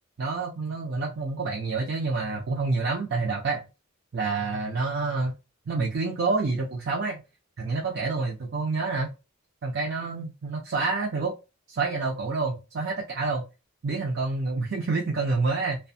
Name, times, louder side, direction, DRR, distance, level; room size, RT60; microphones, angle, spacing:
voice 1, 0.2-3.6 4.1-5.3 5.7-7.2 7.6-9.1 9.6-11.4 11.7-13.5 13.8-15.8, right 3 dB, 55° right, 0.5 m, -28 dB
2.5 x 2.2 x 2.6 m
head